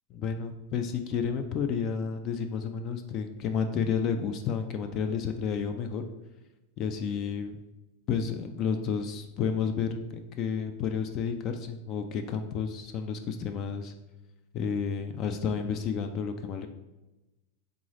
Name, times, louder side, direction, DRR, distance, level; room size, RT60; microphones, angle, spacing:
voice 1, 0.1-6.0 6.8-7.6 8.1-13.9 14.5-16.7, left 6 dB, 35° left, 7 dB, 0.3 m, -31 dB
3.8 x 3.7 x 3.2 m, 1.0 s
supercardioid pair, 145°, 0 cm